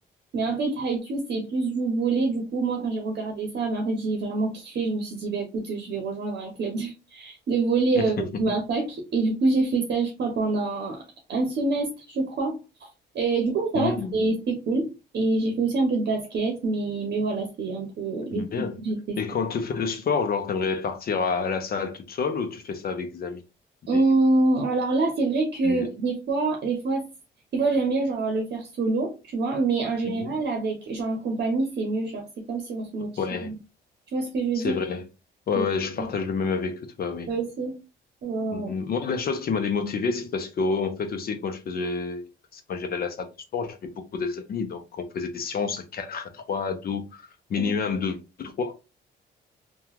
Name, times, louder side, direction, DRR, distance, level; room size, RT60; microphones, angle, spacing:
voice 1, 0.3-11.0 11.3-12.5 13.1-14.9 15.1-19.2 23.9-27.0 27.5-33.1 33.4-33.6 34.1-34.7 35.5-35.6 36.0-36.1 37.3-37.7 38.2-38.7 47.6-47.7, right 3 dB, 55° right, 0.8 m, -26 dB
voice 2, 7.9-8.5 13.7-14.1 18.3-18.8 19.2-23.4 23.9-24.0 25.6-25.9 30.0-30.3 33.2-33.5 34.5-35.1 35.5-37.3 38.5-43.3 43.5-43.8 44.1-48.7, left 5 dB, 50° left, 0.6 m, -29 dB
2.9 x 2.3 x 2.3 m
cardioid pair, 90°, 20 cm